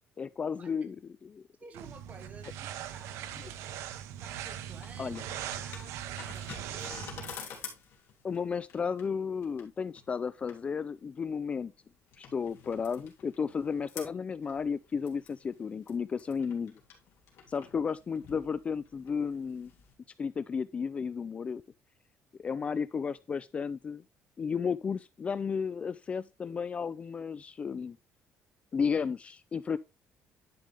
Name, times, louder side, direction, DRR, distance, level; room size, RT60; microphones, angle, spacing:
voice 1, 0.2-1.0 1.2-1.4 5.0-5.2 8.2-11.7 12.2-16.8 17.5-19.7 20.2-21.6 22.4-24.0 24.4-28.0 28.7-29.8, left 6 dB, 25° left, 0.3 m, -33 dB
voice 2, 1.6-3.3 4.2-7.5, right 3 dB, 30° right, 1.7 m, -52 dB
sound 1, 1.7-7.3, right 10 dB, 85° right, 0.8 m, -40 dB
sound 2, 4.2-19.9, left 7 dB, 55° left, 2.9 m, -50 dB
10.5 x 5.3 x 3.4 m
cardioid pair, 145°, 5 cm